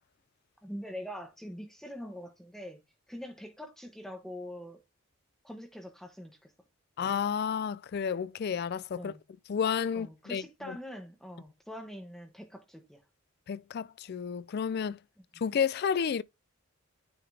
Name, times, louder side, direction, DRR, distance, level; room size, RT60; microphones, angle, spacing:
voice 1, 0.6-2.8 3.1-4.8 5.4-6.5 8.9-9.2 9.9-13.0, equal, ahead, 1.0 m, -43 dB
voice 2, 7.0-9.1 9.5-10.8 13.5-15.0 15.4-16.2, left 7 dB, 50° left, 0.3 m, -31 dB
9.5 x 3.9 x 3.3 m
head